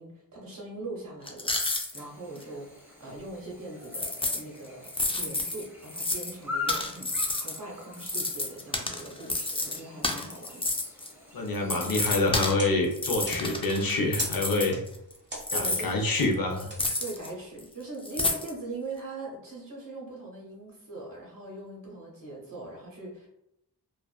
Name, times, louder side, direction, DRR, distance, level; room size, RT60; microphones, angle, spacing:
voice 1, 0.0-2.7 3.0-10.7 15.5-16.2 17.0-23.3, right 2 dB, 50° right, -2 dB, 1.1 m, -41 dB
sound 1, 1.3-2.0 2.4-2.5 3.8-4.4 4.8-6.3 6.7-7.6 7.9-11.1 11.5-12.6 12.9-15.1 15.4-17.3 17.6-17.7 18.0-18.5, left 2 dB, 15° left, 0.3 m, -30 dB
Chirp tweet / Buzz, 1.9-12.1, left 4 dB, 5° right, 0.9 m, -42 dB
voice 2, 11.3-14.8 15.5-16.7, left 2 dB, 55° left, 1 dB, 0.6 m, -27 dB
sound 2, 11.9-17.7, right 1 dB, 25° right, 1.0 m, -45 dB
2.3 x 2.3 x 2.3 m, 0.81 s
cardioid pair, 40°, 42 cm